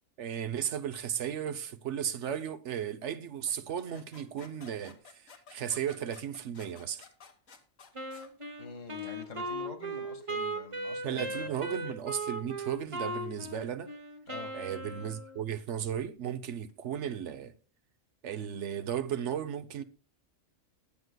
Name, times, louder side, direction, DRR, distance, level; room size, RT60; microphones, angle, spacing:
voice 1, 0.2-7.1 11.0-13.9 14.5-17.5 18.2-19.8, right 9 dB, 65° right, 1.0 m, -35 dB
sound 1, 3.5-8.3, left 5 dB, 90° left, 1.8 m, -54 dB
Wind instrument woodwind instrument, 7.9-15.4, right 1 dB, 25° right, 1.1 m, -38 dB
voice 2, 8.6-11.5 14.3-14.5, left 3 dB, 70° left, 2.1 m, -45 dB
20.0 x 7.9 x 2.2 m
omnidirectional pair, 1.4 m